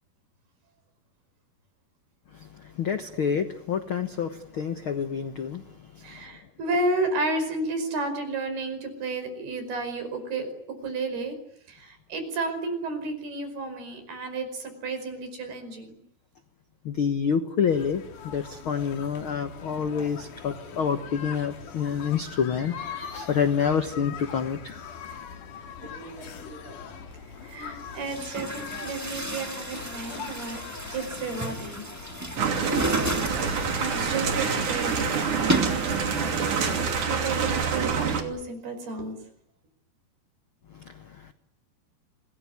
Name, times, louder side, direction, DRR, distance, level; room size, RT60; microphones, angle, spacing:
voice 1, 2.3-6.3 16.8-24.7 40.7-41.3, left 7 dB, 80° left, 9 dB, 1.1 m, -28 dB
voice 2, 6.0-11.4 11.7-16.0 25.8-26.8 27.4-30.6 30.9-31.8 33.8-35.6 36.4-36.6 37.1-39.2, right 2 dB, 80° right, 9 dB, 7.1 m, -32 dB
sound 1, 17.7-36.8, left 7 dB, 60° left, 3.5 m, -42 dB
Chatter / Gurgling / Tap, 27.1-27.2 27.9-37.0, right 1 dB, 10° right, 1.0 m, -33 dB
sound 2, 32.4-38.2, right 6 dB, 55° right, 4.0 m, -26 dB
26.5 x 20.5 x 9.7 m, 0.69 s
omnidirectional pair, 4.4 m